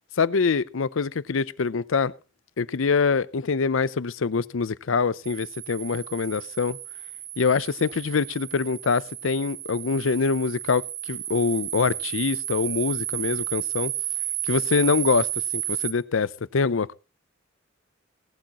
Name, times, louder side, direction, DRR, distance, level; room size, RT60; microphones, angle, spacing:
voice 1, 0.2-2.1 2.6-6.8 7.4-13.9 14.4-16.9, left 5 dB, 75° left, 0.6 m, -24 dB
sound 1, 5.2-15.9, right 12 dB, 60° right, 1.1 m, -32 dB
18.0 x 11.5 x 2.9 m
head